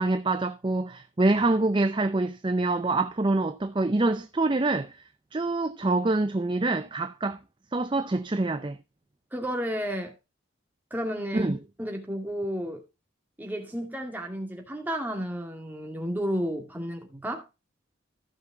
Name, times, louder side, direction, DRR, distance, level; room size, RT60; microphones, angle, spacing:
voice 1, 0.0-5.0 5.3-7.4 7.7-8.8 11.3-11.6, right 2 dB, 25° right, 0.5 m, -25 dB
voice 2, 9.3-10.1 10.9-11.5 11.8-12.8 13.4-17.4, equal, 10° right, 2.1 m, -32 dB
15.0 x 5.9 x 3.5 m
head